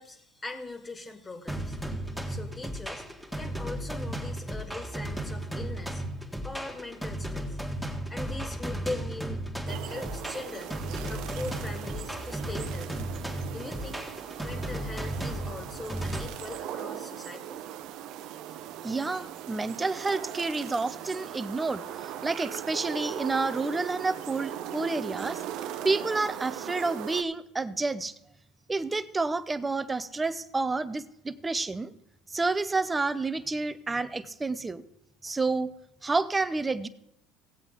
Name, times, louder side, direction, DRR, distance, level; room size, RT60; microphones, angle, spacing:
voice 1, 0.0-6.0 6.4-7.6 8.1-9.4 9.7-10.7 11.1-13.0 13.5-14.1 14.4-17.6, left 2 dB, 20° left, 6 dB, 2.0 m, -41 dB
sound 1, 1.5-16.2, right 1 dB, 5° left, 1.9 m, -35 dB
sound 2, 9.7-27.2, right 11 dB, 65° right, 0.7 m, -39 dB
voice 2, 18.8-25.4 25.8-28.1 28.7-31.9 32.3-34.8 35.2-35.7 36.0-36.9, right 3 dB, 15° right, 13 dB, 0.7 m, -29 dB
16.5 x 8.0 x 3.8 m, 0.81 s
supercardioid pair, 95°, 0 cm